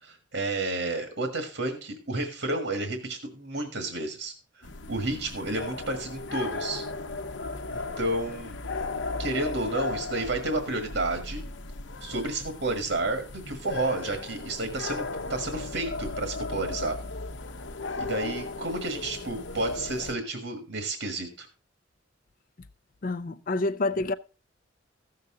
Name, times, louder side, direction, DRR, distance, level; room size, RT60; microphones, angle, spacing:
voice 1, 0.0-6.8 7.7-8.6 9.2-11.4 12.0-17.0 18.0-21.5, right 2 dB, 75° right, 1.7 m, -31 dB
sound 1, 4.6-20.1, left 3 dB, 65° left, 0.8 m, -36 dB
voice 2, 23.0-24.1, left 2 dB, 45° left, 0.5 m, -28 dB
15.0 x 6.7 x 3.7 m
head